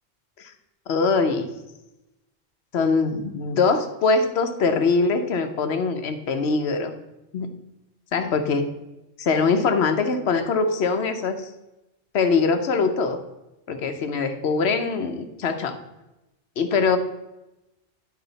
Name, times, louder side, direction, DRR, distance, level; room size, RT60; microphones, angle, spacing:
voice 1, 0.9-1.5 2.7-6.9 7.3-7.5 8.1-8.7 9.2-11.5 12.1-13.2 13.7-15.8 16.6-17.0, left 4 dB, 75° left, 7 dB, 1.0 m, -22 dB
10.5 x 4.8 x 4.0 m, 0.96 s
omnidirectional pair, 1.1 m